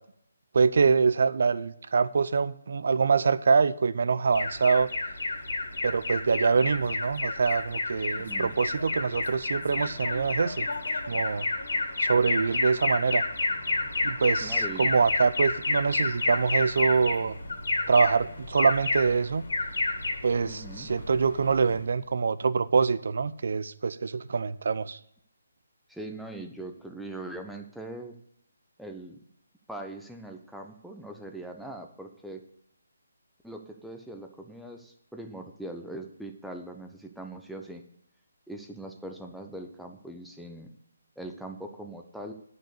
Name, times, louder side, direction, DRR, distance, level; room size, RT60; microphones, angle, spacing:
voice 1, 0.5-4.9 5.8-10.7 11.1-11.5 12.0-13.2 14.0-17.4 17.9-19.4 20.2-25.0, right 5 dB, 65° right, 15 dB, 0.6 m, -25 dB
Alarm, 4.3-22.0, left 3 dB, 75° left, 2.2 m, -30 dB
voice 2, 8.1-8.6 14.4-14.9 20.4-20.9 25.9-28.2 28.8-29.2 29.7-32.4 33.4-37.8 38.5-40.7 41.2-42.3, right 1 dB, ahead, 3 dB, 0.9 m, -41 dB
10.0 x 6.5 x 6.7 m, 0.72 s
hypercardioid pair, 160°, 0 cm